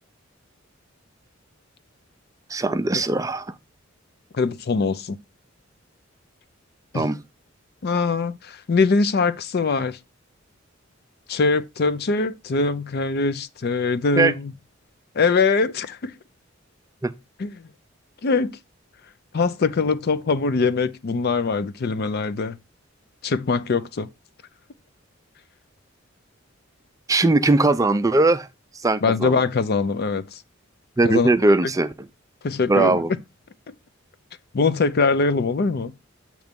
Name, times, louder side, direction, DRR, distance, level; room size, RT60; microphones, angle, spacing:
voice 1, 2.5-3.5 6.9-7.2 14.2-14.3 17.0-17.1 27.1-28.5 28.8-29.4 31.0-31.9 32.7-33.1, right 2 dB, 15° right, 0.4 m, -19 dB
voice 2, 4.3-5.2 6.9-7.1 7.8-10.0 11.3-14.5 15.2-16.1 17.4-17.5 18.2-18.5 19.3-22.6 23.2-24.1 29.0-30.4 31.0-31.3 32.4-33.0 34.5-35.9, left 4 dB, 50° left, 0.5 m, -22 dB
8.0 x 3.1 x 5.1 m
head